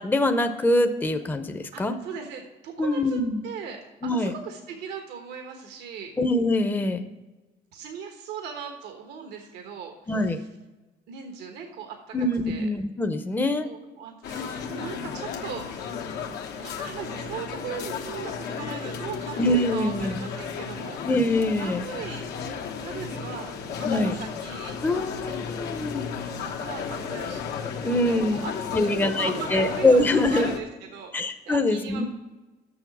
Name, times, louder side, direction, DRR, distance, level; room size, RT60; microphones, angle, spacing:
voice 1, 0.0-1.9 2.8-3.5 4.0-4.3 6.2-7.1 10.1-10.4 12.1-13.7 19.4-20.2 21.0-21.8 23.8-24.1 24.8-26.0 27.8-28.5 28.7-30.5 31.1-32.0, left 1 dB, 10° left, 7 dB, 0.6 m, -24 dB
voice 2, 1.7-6.1 7.7-10.3 11.1-12.1 12.5-12.7 13.6-16.0 16.6-21.0 21.6-22.3 22.8-24.8 26.3-32.0, right 6 dB, 85° right, 4 dB, 1.2 m, -39 dB
sound 1, 14.2-30.6, left 6 dB, 75° left, 1.1 m, -34 dB
7.0 x 6.6 x 6.0 m, 1.1 s
cardioid pair, 110°, 17 cm